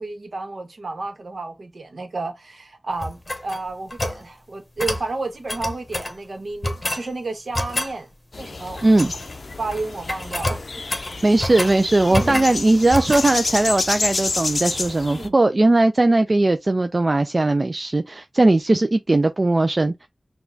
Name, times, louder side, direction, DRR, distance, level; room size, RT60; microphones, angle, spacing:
voice 1, 0.0-8.1 8.3-8.9 9.6-10.6 12.1-12.3 15.1-15.4, right 3 dB, 75° right, 1.0 m, -31 dB
sound 1, 3.0-4.2 4.8-5.1 5.5-6.2 6.6-7.1 7.5-7.9 8.8-9.3 9.6-9.8 10.1-11.8 12.1-12.6 12.9-13.3, left 1 dB, 35° left, 0.8 m, -27 dB
sound 2, 8.3-15.3, left 3 dB, 75° left, 0.4 m, -29 dB
voice 2, 11.2-20.1, right 2 dB, 50° right, 0.3 m, -18 dB
6.0 x 2.3 x 2.6 m
wide cardioid pair, 50°, 0 cm